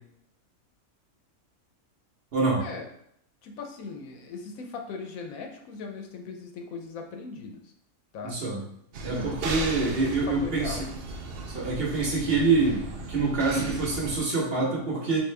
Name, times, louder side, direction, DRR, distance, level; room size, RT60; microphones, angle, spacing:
voice 1, 2.3-2.6 8.2-8.6 9.0-10.9 11.5-12.8 13.1-15.2, right 3 dB, 50° right, -3 dB, 1.0 m, -26 dB
voice 2, 3.4-7.7 8.1-8.4 9.2-10.8, left 4 dB, 75° left, 3 dB, 1.0 m, -39 dB
sound 1, 8.9-14.2, right 3 dB, 75° right, 0.5 m, -36 dB
3.6 x 2.6 x 3.2 m, 0.72 s
omnidirectional pair, 1.5 m